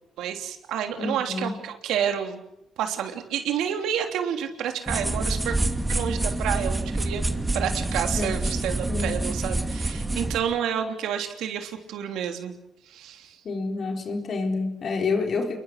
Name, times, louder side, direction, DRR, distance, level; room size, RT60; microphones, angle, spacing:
voice 1, 0.2-2.4 2.8-5.6 5.9-7.3 7.5-12.5 12.9-13.4, right 9 dB, 85° right, 5 dB, 3.2 m, -29 dB
voice 2, 1.0-1.6 8.1-8.4 8.9-9.2 13.4-15.6, left 4 dB, 55° left, 4 dB, 4.4 m, -28 dB
sound 1, 4.9-10.4, right 2 dB, 15° right, 2.5 m, -27 dB
29.5 x 21.5 x 6.7 m, 0.81 s
cardioid pair, 90°, 0 cm